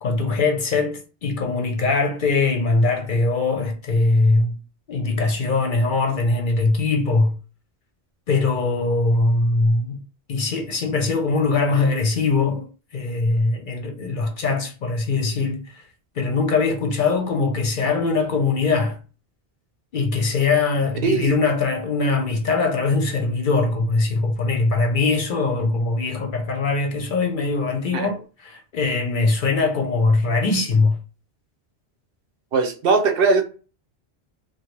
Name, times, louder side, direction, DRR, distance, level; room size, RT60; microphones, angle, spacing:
voice 1, 0.0-4.6 4.9-7.4 8.3-10.0 10.3-12.7 12.9-15.8 16.2-19.0 19.9-31.0, left 3 dB, 55° left, 0.8 m, -21 dB
voice 2, 21.0-21.4 27.9-28.2 32.5-33.4, right 4 dB, 65° right, 0.8 m, -20 dB
2.9 x 2.3 x 3.1 m
omnidirectional pair, 1.1 m